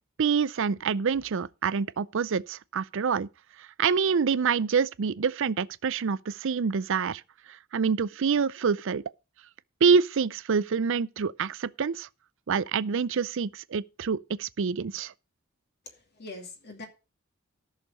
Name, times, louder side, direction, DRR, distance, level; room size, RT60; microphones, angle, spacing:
voice 1, 0.2-3.3 3.8-7.2 7.7-9.0 9.8-12.1 12.5-15.1, right 6 dB, 65° right, 0.5 m, -26 dB
voice 2, 15.8-16.9, left 2 dB, 50° left, 2.5 m, -43 dB
14.0 x 6.6 x 5.1 m
head